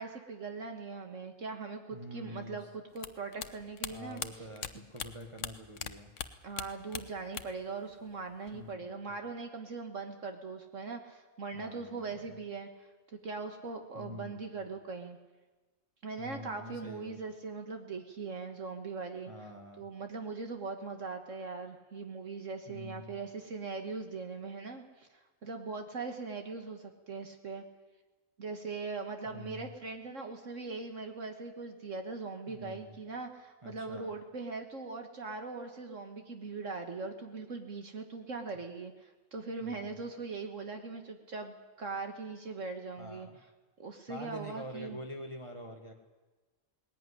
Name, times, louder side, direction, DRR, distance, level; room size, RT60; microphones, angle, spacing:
voice 1, 0.0-4.4 6.4-12.9 13.2-15.2 16.0-19.3 19.8-27.6 28.4-43.3 43.8-45.0, right 4 dB, 60° right, 5 dB, 1.8 m, -40 dB
voice 2, 1.9-2.7 3.9-6.1 8.5-9.1 11.5-12.3 13.9-14.6 16.2-17.2 19.3-19.8 22.7-23.1 29.3-29.7 32.5-33.0 33.6-34.1 39.6-40.0 43.0-43.4 44.1-45.9, equal, 20° right, 2 dB, 1.6 m, -46 dB
sound 1, 3.0-5.9 6.2-7.7 7.9-8.7, left 8 dB, 60° left, 1.2 m, -40 dB
19.5 x 17.0 x 9.9 m, 1.2 s
omnidirectional pair, 1.5 m